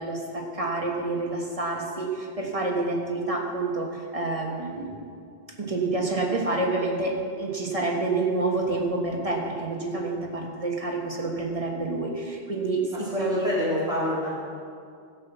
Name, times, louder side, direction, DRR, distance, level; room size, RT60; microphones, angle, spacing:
voice 1, 0.0-5.1 5.6-13.5, right 2 dB, 35° right, -1 dB, 1.6 m, -28 dB
voice 2, 12.9-14.3, left 1 dB, 5° right, -9 dB, 3.3 m, -27 dB
15.5 x 5.5 x 7.1 m, 2.3 s
omnidirectional pair, 1.0 m